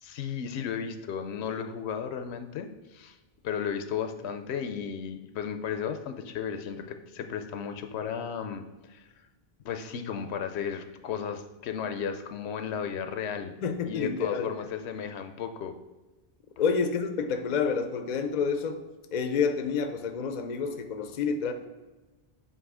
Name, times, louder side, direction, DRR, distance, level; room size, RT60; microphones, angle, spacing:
voice 1, 0.0-3.2 3.4-9.1 9.6-13.5 13.9-15.7 16.6-16.7, left 7 dB, 80° left, 8 dB, 0.8 m, -34 dB
voice 2, 13.6-14.5 16.6-18.8 19.1-21.5, left 5 dB, 50° left, 8 dB, 0.5 m, -28 dB
7.7 x 2.7 x 4.8 m, 1.2 s
omnidirectional pair, 1.1 m